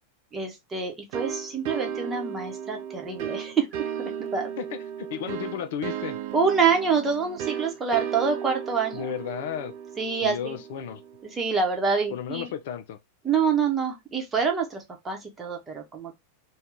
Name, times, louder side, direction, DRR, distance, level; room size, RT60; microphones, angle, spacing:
voice 1, 0.3-3.7 4.0-4.5 6.3-9.1 10.0-10.6 11.2-12.5 13.2-16.1, right 5 dB, 20° right, 0.9 m, -26 dB
sound 1, 1.1-11.6, right 8 dB, 50° right, 0.4 m, -35 dB
voice 2, 4.6-6.2 8.9-9.7 10.2-11.0 12.1-13.0, left 9 dB, 55° left, 0.4 m, -33 dB
2.7 x 2.3 x 3.6 m
figure-of-eight pair, 90°, 0 cm